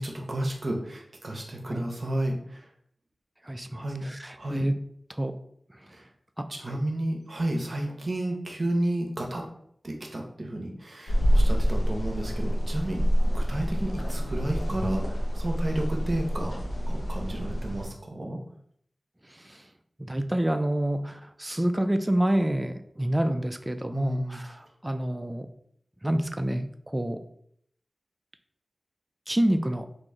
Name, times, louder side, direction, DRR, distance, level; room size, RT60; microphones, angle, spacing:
voice 1, 0.0-2.6 3.7-4.0 4.4-4.7 5.9-6.0 6.6-9.5 9.8-16.6 16.9-18.4 23.9-24.4, right 1 dB, 55° right, 1 dB, 0.7 m, -32 dB
voice 2, 3.4-4.7 5.1-5.4 5.7-5.9 6.4-6.8 19.2-19.7 20.0-25.5 26.0-27.2 29.3-29.9, right 1 dB, 20° right, 8 dB, 0.4 m, -28 dB
sound 1, 11.1-17.9, equal, 85° left, 0.7 m, -27 dB
3.0 x 2.6 x 3.6 m, 0.67 s
cardioid pair, 45°, 0 cm